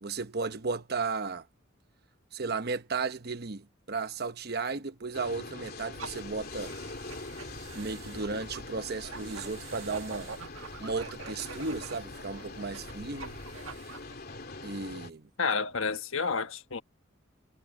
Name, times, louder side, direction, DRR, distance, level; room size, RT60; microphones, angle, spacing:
voice 1, 0.0-1.5 2.3-6.7 7.7-10.3 10.8-13.4 14.6-15.3, right 4 dB, 55° right, 1.0 m, -34 dB
sound 1, 5.1-15.1, left 3 dB, 50° left, 3.0 m, -43 dB
sound 2, 5.9-14.6, right 4 dB, 85° right, 1.8 m, -45 dB
voice 2, 15.4-16.8, left 5 dB, 85° left, 1.4 m, -30 dB
head